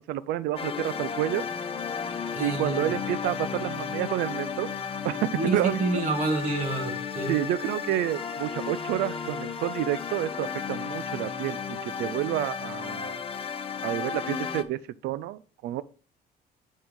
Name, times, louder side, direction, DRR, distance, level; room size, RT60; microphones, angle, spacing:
voice 1, 0.0-1.5 2.4-4.7 5.0-6.0 7.3-13.2 13.8-15.8, right 14 dB, 80° right, 0.4 m, -29 dB
sound 1, 0.6-14.6, left 6 dB, 35° left, 1.0 m, -34 dB
voice 2, 2.4-2.9 5.3-7.4, right 2 dB, 50° right, 1.8 m, -28 dB
8.7 x 5.5 x 3.7 m
cardioid pair, 110°, 17 cm